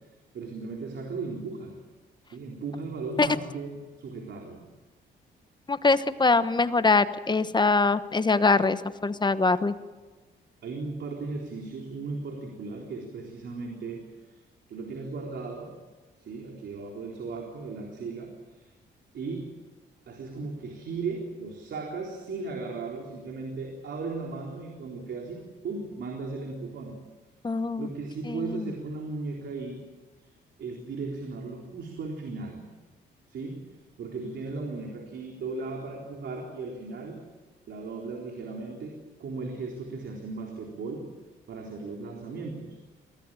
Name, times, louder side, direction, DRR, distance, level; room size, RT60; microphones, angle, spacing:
voice 1, 0.3-1.8 2.3-4.6 10.6-14.0 14.3-14.4 14.7-15.7 16.2-18.7 19.1-19.5 20.1-27.0 27.8-29.8 30.2-30.3 30.6-32.7 33.3-33.7 34.0-37.2 37.7-41.1 41.5-42.8, right 4 dB, 60° right, 1 dB, 3.9 m, -36 dB
voice 2, 5.7-9.7 27.4-27.9 28.3-28.7, left 3 dB, 20° left, 12 dB, 1.1 m, -23 dB
22.5 x 17.0 x 9.0 m, 1.3 s
cardioid pair, 90°, 20 cm